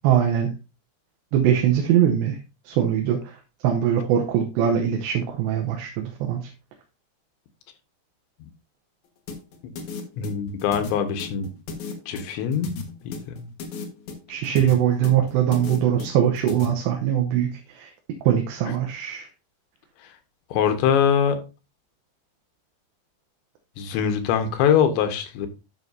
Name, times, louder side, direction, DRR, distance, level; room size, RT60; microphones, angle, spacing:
voice 1, 0.0-0.5 1.3-2.4 2.7-3.2 3.6-6.5 14.3-17.9 18.3-19.3, right 9 dB, 80° right, 3 dB, 3.1 m, -22 dB
sound 1, 9.3-16.7, left 4 dB, 60° left, 2.1 m, -35 dB
voice 2, 10.2-11.5 12.1-13.5 18.6-18.7 20.5-21.4 23.8-25.5, left 8 dB, 85° left, 7 dB, 3.4 m, -23 dB
12.0 x 6.4 x 2.7 m, 0.29 s
omnidirectional pair, 5.1 m